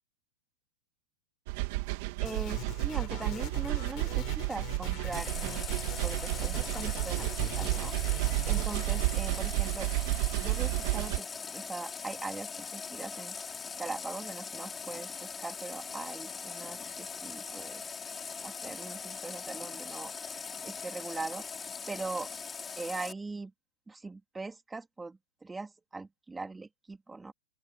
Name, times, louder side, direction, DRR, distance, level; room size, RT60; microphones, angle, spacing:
sound 1, 1.5-11.2, right 22 dB, 50° right, 3.2 m, -31 dB
voice 1, 2.2-5.8 6.0-7.9 8.5-9.9 10.4-13.3 13.8-17.8 18.4-21.4 21.9-22.3 22.8-23.5 23.9-27.3, right 3 dB, 10° right, 3.4 m, -41 dB
sound 2, 2.3-10.3, left 18 dB, 35° left, 6.3 m, -45 dB
Water tap faucet, 5.1-23.1, left 5 dB, 15° left, 5.2 m, -41 dB
open air
supercardioid pair, 150°, 0 cm